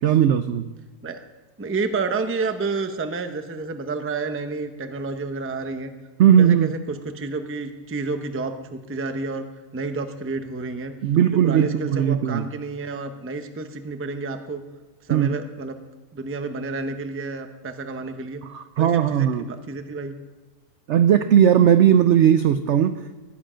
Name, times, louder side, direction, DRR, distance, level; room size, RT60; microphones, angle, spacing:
voice 1, 0.0-0.6 6.2-6.7 11.0-12.5 15.1-15.3 18.5-19.4 20.9-23.1, right 9 dB, 75° right, 11 dB, 0.6 m, -17 dB
voice 2, 1.6-5.9 6.4-9.5 9.7-10.9 11.3-14.6 15.0-15.8 16.1-18.4 18.8-20.2, right 3 dB, 15° right, 7 dB, 0.4 m, -30 dB
19.5 x 7.7 x 5.0 m, 1.3 s
omnidirectional pair, 1.7 m